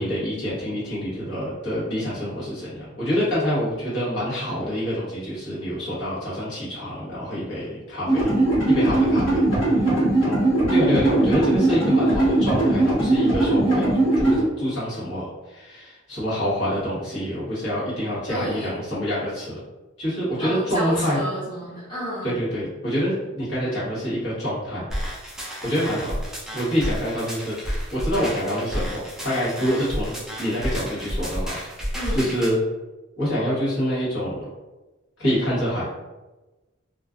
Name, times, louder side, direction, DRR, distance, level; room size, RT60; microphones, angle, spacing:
voice 1, 0.0-8.4 8.7-9.4 10.2-19.6 20.0-21.2 22.2-24.8 25.6-26.2 26.5-27.6 27.9-31.6 32.1-32.6 33.2-34.4 35.2-35.9, equal, 60° left, -9 dB, 1.2 m, -26 dB
sound 1, 8.1-14.4, right 2 dB, 80° left, 1.5 m, -20 dB
voice 2, 18.3-18.8 20.4-22.3 31.9-32.3, equal, 20° left, -11 dB, 0.9 m, -31 dB
sound 2, 24.9-32.5, equal, ahead, 0.4 m, -31 dB
2.4 x 2.3 x 2.4 m, 1.1 s
head